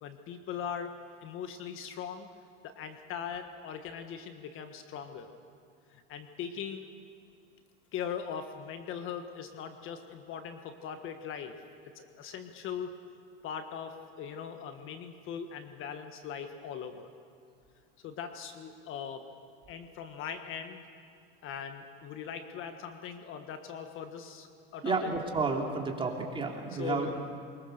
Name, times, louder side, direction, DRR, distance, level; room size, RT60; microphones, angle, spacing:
voice 1, 0.0-2.3 2.6-5.3 5.9-6.9 7.9-11.6 11.9-12.9 13.4-17.1 18.0-19.3 19.7-20.8 21.4-25.1 26.7-27.2, left 7 dB, 45° left, 7 dB, 1.5 m, -40 dB
voice 2, 24.8-27.2, right 4 dB, 15° right, 0 dB, 3.1 m, -31 dB
24.0 x 21.5 x 6.7 m, 2.3 s
supercardioid pair, 125°, 29 cm